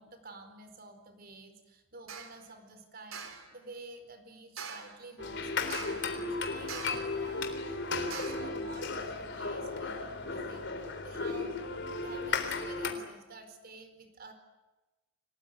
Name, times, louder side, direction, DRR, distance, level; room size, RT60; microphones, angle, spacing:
voice 1, 0.0-11.6 12.0-14.3, right 3 dB, 45° right, 8 dB, 4.5 m, -50 dB
sound 1, 2.1-2.4 3.1-3.5 4.6-5.0 5.7-6.1 6.7-7.1 8.1-8.5, right 6 dB, 80° right, 3.6 m, -43 dB
sound 2, 5.2-12.9, left 3 dB, 60° left, 3.7 m, -35 dB
29.5 x 19.5 x 9.3 m, 1.1 s
head